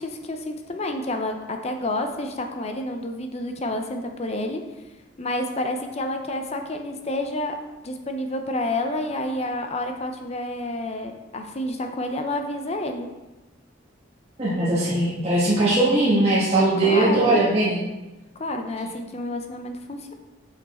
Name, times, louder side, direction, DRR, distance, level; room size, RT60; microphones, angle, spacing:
voice 1, 0.0-4.6 5.2-7.5 7.8-13.1 16.8-17.5 18.4-20.1, left 1 dB, 35° left, 5 dB, 0.6 m, -29 dB
voice 2, 14.4-17.8, right 2 dB, 30° right, -8 dB, 1.6 m, -20 dB
7.1 x 5.9 x 4.3 m, 1.1 s
head